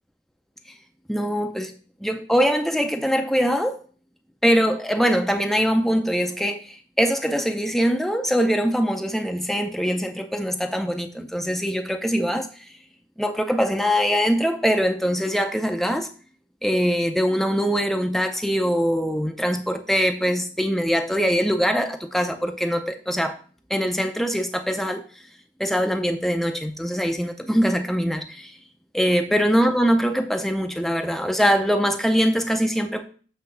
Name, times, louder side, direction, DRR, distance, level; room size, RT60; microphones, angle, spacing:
voice 1, 1.1-1.7 2.0-3.8 4.4-12.6 13.2-16.1 16.6-23.4 23.7-25.0 25.6-28.6 28.9-33.0, equal, ahead, 6 dB, 0.5 m, -22 dB
7.6 x 3.5 x 5.5 m, 0.41 s
head